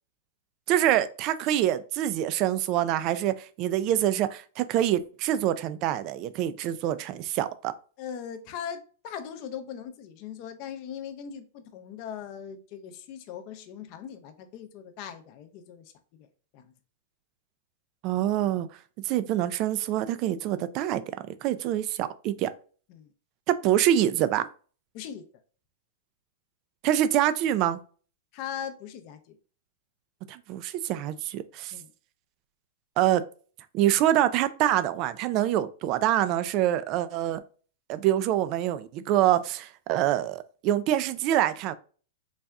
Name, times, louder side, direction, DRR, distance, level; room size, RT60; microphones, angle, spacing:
voice 1, 0.7-7.7 18.0-18.7 19.0-21.0 21.4-22.5 23.5-24.5 26.8-27.8 30.3-31.7 33.0-33.2 33.7-37.4 37.9-41.7, right 12 dB, 35° right, 0.3 m, -25 dB
voice 2, 8.0-15.9 16.2-16.3 16.5-16.7 22.9-23.1 24.9-25.2 28.3-29.3 31.7-31.9, left 8 dB, 40° left, 0.6 m, -40 dB
4.0 x 2.3 x 3.4 m
supercardioid pair, 150°, 0 cm